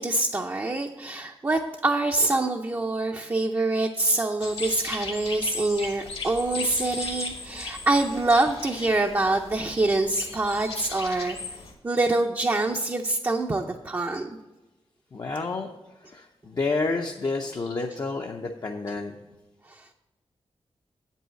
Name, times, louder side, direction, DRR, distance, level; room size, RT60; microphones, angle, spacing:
voice 1, 0.0-11.4 11.8-14.3, right 2 dB, 25° right, 2 dB, 0.6 m, -25 dB
sound 1, 4.4-11.7, left 3 dB, 70° left, 1.6 m, -37 dB
voice 2, 15.1-15.7 16.0-19.2, left 3 dB, 40° left, 2 dB, 0.6 m, -29 dB
7.8 x 5.5 x 7.6 m, 1.1 s
wide cardioid pair, 120°, 10 cm